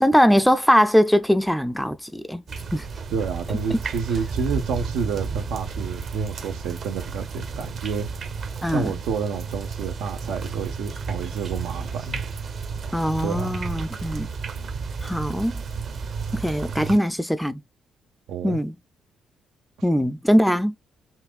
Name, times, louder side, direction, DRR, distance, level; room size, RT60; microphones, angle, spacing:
voice 1, 0.0-2.4 2.7-2.9 3.7-3.8 8.6-8.9 12.9-14.3 15.0-15.6 16.3-17.6 18.4-18.8 19.8-20.7, equal, 5° left, 0.5 m, -21 dB
sound 1, 2.5-17.0, right 5 dB, 55° right, 1.0 m, -32 dB
voice 2, 3.1-8.1 8.7-12.2 13.2-13.6 18.3-18.6, right 6 dB, 90° right, 1.2 m, -29 dB
5.8 x 2.6 x 2.4 m
cardioid pair, 90°, 0 cm